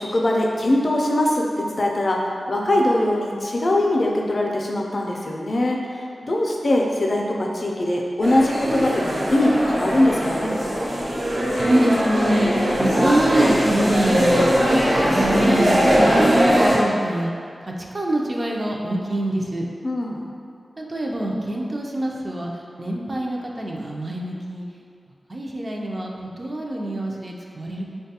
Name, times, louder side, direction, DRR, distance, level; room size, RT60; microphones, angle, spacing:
voice 1, 0.0-5.8 6.2-10.7 19.8-20.2, left 1 dB, 55° left, -1 dB, 0.4 m, -21 dB
sound 1, 8.2-16.8, equal, 80° right, 0.8 m, -20 dB
voice 2, 11.6-12.5 12.8-14.4 15.0-17.3 17.6-19.7 20.8-22.5 22.8-24.6 25.3-26.1 26.4-27.9, right 1 dB, 40° right, -1 dB, 0.4 m, -24 dB
3.8 x 2.2 x 2.7 m, 2.3 s
wide cardioid pair, 70°, 0 cm